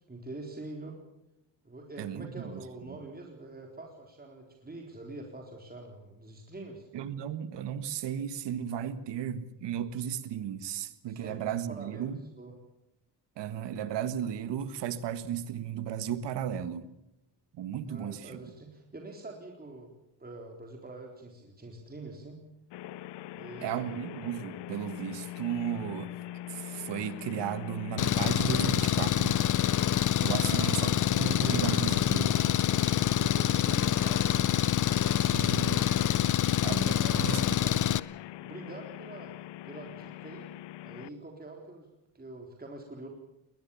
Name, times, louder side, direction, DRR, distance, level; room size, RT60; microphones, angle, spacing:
voice 1, 0.1-1.0 1.6-6.9 11.1-11.4 11.7-12.6 17.9-19.9 20.2-22.4 23.3-23.9 30.4-31.8 32.1-32.4 32.7-32.8 33.2-34.5 36.6-37.8 38.4-39.4 39.6-40.5 40.8-41.9 42.1-43.1, right 2 dB, 20° right, 3.9 m, -45 dB
voice 2, 2.0-2.6 6.9-12.2 13.4-16.9 17.5-18.3 23.6-26.1 26.5-29.4 29.9-32.3 35.3-35.8 36.6-37.4, right 9 dB, 85° right, 1.7 m, -35 dB
sound 1, 22.7-41.1, left 13 dB, 85° left, 0.8 m, -42 dB
Engine, 28.0-38.0, left 10 dB, 45° left, 0.7 m, -26 dB
21.0 x 19.5 x 7.1 m
cardioid pair, 85°, 41 cm